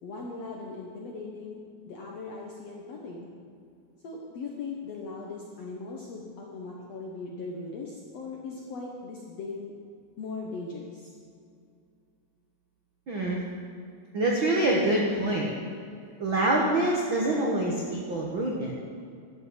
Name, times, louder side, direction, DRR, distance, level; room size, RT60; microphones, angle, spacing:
voice 1, 0.0-3.3 4.0-9.7 10.2-11.1, left 3 dB, 65° left, -1 dB, 1.6 m, -39 dB
voice 2, 13.1-13.4 14.1-15.5 16.2-18.7, right 1 dB, 85° right, -2 dB, 1.0 m, -25 dB
12.0 x 8.6 x 7.9 m, 2.4 s
omnidirectional pair, 4.6 m